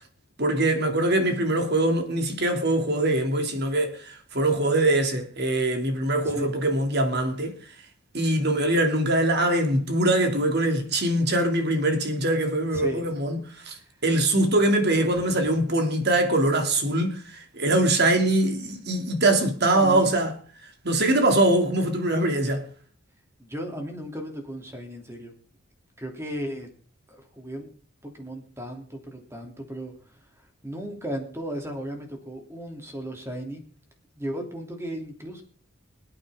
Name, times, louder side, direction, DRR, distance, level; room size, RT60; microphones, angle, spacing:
voice 1, 0.4-7.6 8.1-20.3 20.8-22.7, right 1 dB, 50° right, 2.6 m, -23 dB
voice 2, 13.5-13.9 19.7-20.1 23.4-25.3 26.0-26.7 27.1-27.7 28.0-33.6 34.1-35.4, equal, 10° right, 2.8 m, -35 dB
26.0 x 8.8 x 3.6 m
head